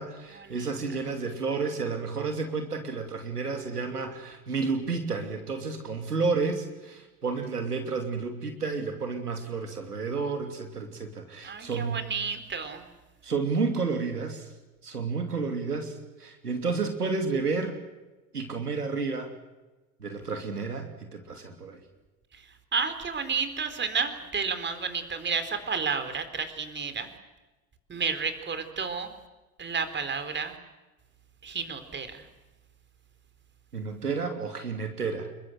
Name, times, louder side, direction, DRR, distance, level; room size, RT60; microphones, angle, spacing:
voice 1, 0.0-12.1 13.2-14.5 14.8-17.8 18.3-19.3 20.0-21.8 33.7-35.3, right 4 dB, 85° right, 5 dB, 2.9 m, -31 dB
voice 2, 11.4-12.8 22.3-22.4 22.7-27.1 27.9-29.1 29.6-30.5 31.4-32.3, right 5 dB, 25° right, 9 dB, 4.3 m, -31 dB
28.5 x 22.0 x 8.1 m, 1.1 s
figure-of-eight pair, 75°, 45 cm